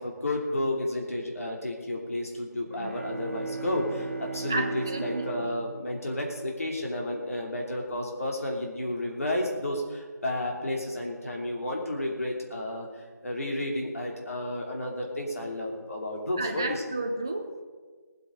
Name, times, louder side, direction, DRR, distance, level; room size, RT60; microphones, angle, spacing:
voice 1, 0.0-12.9 13.2-16.8, left 1 dB, 50° left, 0 dB, 2.9 m, -32 dB
Bowed string instrument, 2.6-7.2, right 4 dB, 40° right, 1.4 m, -38 dB
voice 2, 4.5-5.3 16.4-17.6, right 2 dB, 10° right, 4 dB, 0.5 m, -32 dB
18.5 x 8.2 x 5.2 m, 1.5 s
figure-of-eight pair, 170°, 10 cm